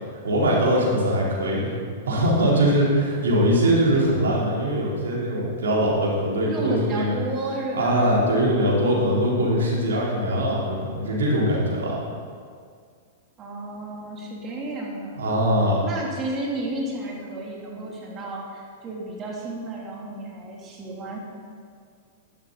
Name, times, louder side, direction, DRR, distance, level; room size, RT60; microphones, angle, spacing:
voice 1, 0.1-1.8 2.1-7.2 7.7-12.0 15.2-15.8, equal, 80° right, -4 dB, 3.8 m, -22 dB
voice 2, 6.5-8.3 13.4-15.2 15.8-21.2, right 2 dB, 30° right, -3 dB, 3.3 m, -32 dB
12.5 x 11.0 x 4.1 m, 2.1 s
hypercardioid pair, 110°, 0 cm